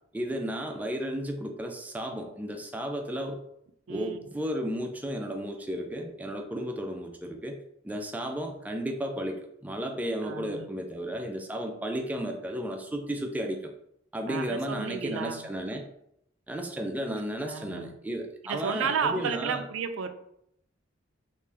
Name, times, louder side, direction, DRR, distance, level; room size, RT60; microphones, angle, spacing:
voice 1, 0.1-3.4 3.9-13.7 14.1-15.9 16.5-19.6, equal, 10° right, 3 dB, 0.3 m, -33 dB
voice 2, 10.2-10.7 14.3-15.4 17.5-17.9 18.5-20.1, right 6 dB, 85° right, 9 dB, 0.4 m, -32 dB
3.3 x 2.5 x 3.3 m, 0.75 s
head